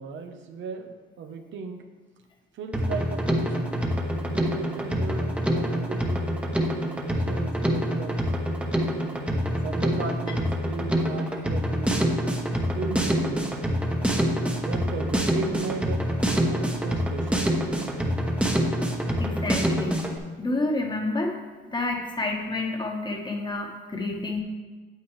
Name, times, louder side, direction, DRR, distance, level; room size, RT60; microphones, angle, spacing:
voice 1, 0.0-1.8 2.5-3.9 4.2-6.3 7.0-8.2 9.6-13.5 14.5-17.6, right 4 dB, 75° right, 6 dB, 1.0 m, -36 dB
Drum kit, 2.7-20.2, equal, 5° right, 1.1 m, -26 dB
voice 2, 19.2-20.1 20.4-21.3 21.7-24.4, left 2 dB, 20° left, 1 dB, 1.4 m, -29 dB
9.1 x 8.1 x 3.3 m, 1.4 s
cardioid pair, 90°, 20 cm